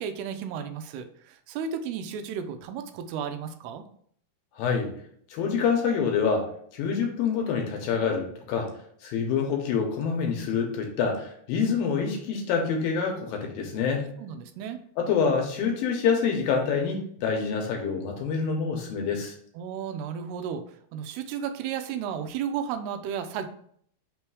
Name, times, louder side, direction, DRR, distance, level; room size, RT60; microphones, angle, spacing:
voice 1, 0.0-3.8 14.2-14.8 19.5-23.5, right 7 dB, 90° right, 8 dB, 2.6 m, -33 dB
voice 2, 4.6-4.9 5.3-8.7 9.0-14.1 15.0-19.3, left 6 dB, 75° left, 2 dB, 2.4 m, -26 dB
6.0 x 3.3 x 4.7 m, 0.63 s
omnidirectional pair, 4.6 m